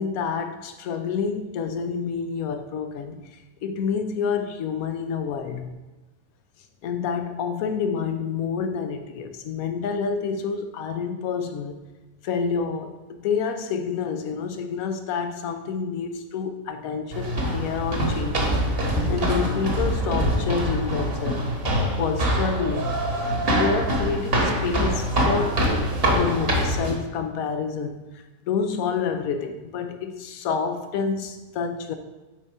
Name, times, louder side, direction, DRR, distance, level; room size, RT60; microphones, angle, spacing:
voice 1, 0.0-5.7 6.8-11.8 12.2-18.4 19.1-21.5 22.0-23.0 23.5-28.0 28.5-32.0, left 6 dB, 85° left, 7 dB, 1.1 m, -28 dB
sound 1, 17.1-26.9, equal, 45° right, 1.4 m, -24 dB
6.2 x 4.2 x 4.6 m, 1.2 s
omnidirectional pair, 1.5 m